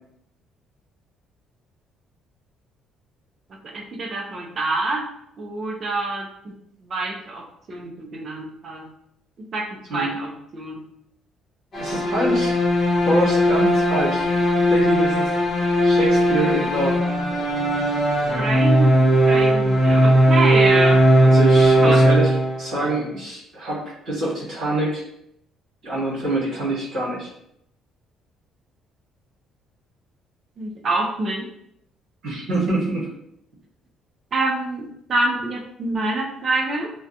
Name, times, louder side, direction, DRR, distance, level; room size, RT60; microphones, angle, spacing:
voice 1, 3.7-5.0 5.4-6.5 6.9-8.9 9.5-10.8 18.3-21.0 21.8-22.0 30.6-31.4 34.3-36.9, right 2 dB, 30° right, 1 dB, 0.4 m, -26 dB
sound 1, 11.7-22.9, equal, 25° left, 0.7 m, -18 dB
voice 2, 11.7-12.5 13.0-14.3 14.7-15.3 15.8-17.0 21.2-25.0 25.8-27.3 32.2-33.1, right 1 dB, 70° right, -9 dB, 1.2 m, -25 dB
2.5 x 2.1 x 2.7 m, 0.75 s
cardioid pair, 175°, 0 cm